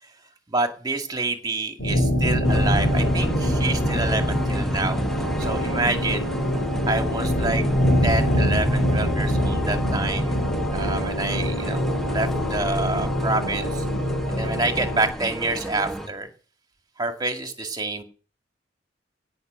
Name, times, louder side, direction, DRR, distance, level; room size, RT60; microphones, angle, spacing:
voice 1, 0.5-5.0 5.4-6.3 6.8-7.6 8.0-10.4 10.7-13.9 14.3-16.3 17.0-18.0, right 3 dB, 20° right, 5 dB, 2.0 m, -27 dB
sound 1, 1.8-15.1, equal, 70° left, 4.1 m, -24 dB
sound 2, 2.4-16.1, equal, ahead, 1.3 m, -32 dB
17.0 x 5.9 x 8.1 m, 0.38 s
head